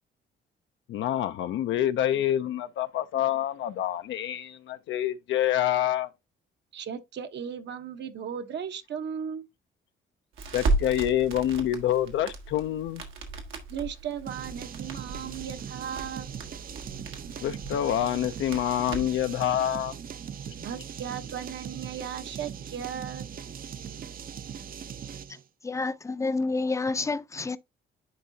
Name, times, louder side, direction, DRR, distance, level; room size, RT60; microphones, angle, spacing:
voice 1, 0.9-6.1 10.5-13.0 17.4-19.9, left 11 dB, 75° left, 0.5 m, -27 dB
voice 2, 6.7-9.5 13.7-16.3 20.6-23.3, right 8 dB, 65° right, 1.0 m, -36 dB
Crackle, 10.4-19.3, right 2 dB, 85° right, 1.7 m, -35 dB
sound 1, 14.3-25.4, right 7 dB, 45° right, 0.6 m, -40 dB
voice 3, 25.3-27.6, left 3 dB, 15° left, 0.5 m, -29 dB
10.5 x 3.7 x 2.7 m
cardioid pair, 90°, 20 cm